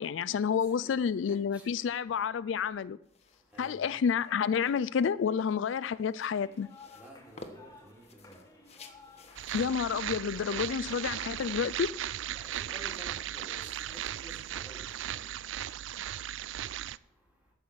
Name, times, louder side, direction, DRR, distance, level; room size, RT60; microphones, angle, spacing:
voice 1, 0.0-3.0 3.6-6.7 9.5-11.9, left 7 dB, 75° left, 0.4 m, -30 dB
voice 2, 0.6-1.0 1.2-1.9 3.2-3.9 6.9-9.7 12.3-17.5, right 1 dB, 10° right, 3.6 m, -54 dB
sound 1, 3.0-11.6, left 2 dB, 35° left, 1.2 m, -55 dB
sound 2, 3.8-11.6, left 3 dB, 20° left, 1.5 m, -57 dB
sound 3, 9.4-17.0, right 11 dB, 75° right, 0.4 m, -37 dB
12.5 x 5.6 x 7.9 m
head